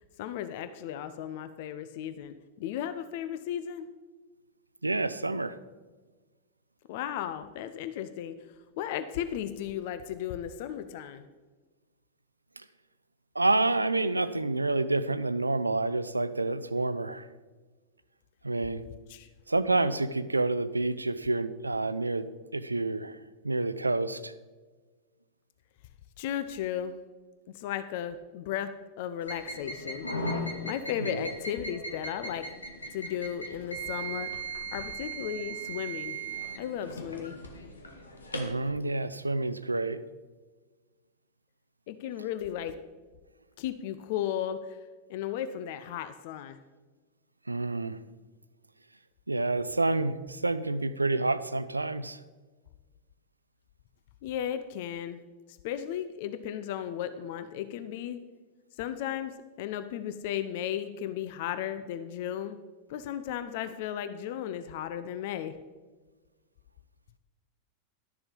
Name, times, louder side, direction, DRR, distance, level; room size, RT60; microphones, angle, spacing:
voice 1, 0.2-3.9 6.9-8.4 8.8-11.3 19.1-19.3 26.2-27.0 27.5-28.7 29.0-30.1 30.6-32.5 32.9-34.3 34.7-36.2 36.6-37.4 41.9-42.7 43.6-44.8 45.1-46.6 54.2-55.2 55.6-58.2 58.8-59.3 59.6-62.6 62.9-65.6, left 10 dB, 50° left, 11 dB, 0.5 m, -35 dB
voice 2, 4.8-5.5 13.4-17.2 18.4-18.8 19.5-23.2 23.4-24.3 31.0-31.3 38.3-40.0 47.5-48.0 49.3-52.2, right 2 dB, 80° right, 15 dB, 0.4 m, -28 dB
sound 1, 29.2-38.6, right 2 dB, 75° left, 1.3 m, -38 dB
12.0 x 6.9 x 5.1 m, 1.3 s
figure-of-eight pair, 90°, 0 cm